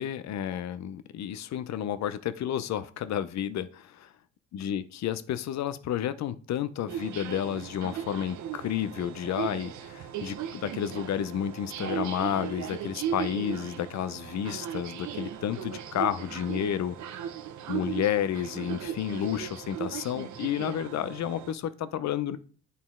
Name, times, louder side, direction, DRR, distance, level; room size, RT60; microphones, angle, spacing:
voice 1, 0.0-4.1 4.5-17.0 17.7-22.4, left 10 dB, 65° left, 14 dB, 0.6 m, -31 dB
sound 1, 6.9-21.5, right 9 dB, 70° right, 0.8 m, -37 dB
9.1 x 4.2 x 3.6 m, 0.42 s
cardioid pair, 90°, 30 cm